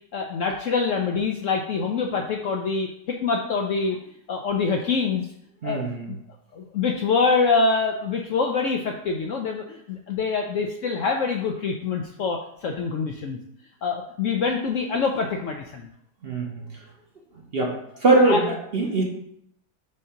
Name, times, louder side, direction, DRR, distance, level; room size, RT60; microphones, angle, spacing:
voice 1, 0.1-2.9 3.2-4.0 4.3-5.3 5.6-5.8 6.1-6.2 6.5-13.4 13.8-15.9 18.2-18.4, left 4 dB, 65° left, 2 dB, 0.8 m, -25 dB
voice 2, 5.6-6.1 16.2-16.7 17.5-17.7 18.0-19.0, right 2 dB, 45° right, 0 dB, 0.9 m, -21 dB
6.4 x 2.8 x 5.6 m, 0.73 s
omnidirectional pair, 1.8 m